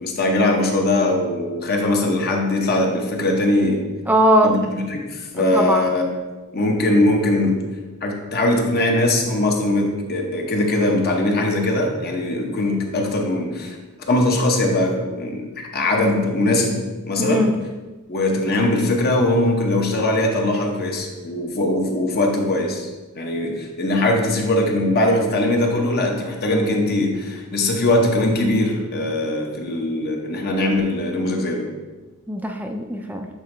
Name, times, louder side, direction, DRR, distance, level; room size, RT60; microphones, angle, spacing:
voice 1, 0.0-3.8 4.4-6.1 6.5-7.6 8.0-13.8 14.1-16.8 17.1-17.5 18.1-22.9 23.1-31.7, left 1 dB, 45° left, 1 dB, 0.8 m, -21 dB
voice 2, 4.1-4.6 5.5-5.8 17.2-17.6 32.3-33.3, right 1 dB, 5° right, 3 dB, 0.3 m, -19 dB
7.5 x 4.0 x 3.2 m, 1.2 s
head